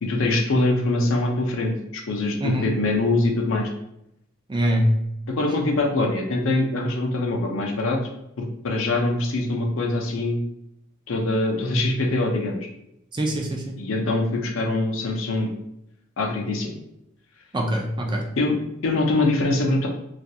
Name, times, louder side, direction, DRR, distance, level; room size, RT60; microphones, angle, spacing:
voice 1, 0.0-3.7 5.3-8.0 8.4-10.4 11.1-12.6 13.8-15.5 16.2-16.8 18.4-19.9, left 2 dB, 70° left, 1 dB, 0.5 m, -23 dB
voice 2, 4.5-4.9 13.1-13.8 17.5-18.2, equal, 20° right, 0 dB, 0.3 m, -23 dB
2.4 x 2.3 x 2.7 m, 0.79 s
head